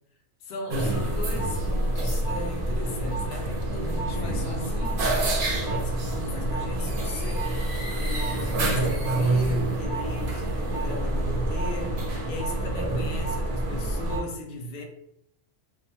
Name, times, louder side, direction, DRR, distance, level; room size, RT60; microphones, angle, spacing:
voice 1, 0.4-14.8, left 2 dB, 65° left, 0.7 m, -38 dB
sound 1, 0.7-14.2, right 1 dB, 55° right, 0.7 m, -27 dB
2.5 x 2.0 x 2.8 m
omnidirectional pair, 1.2 m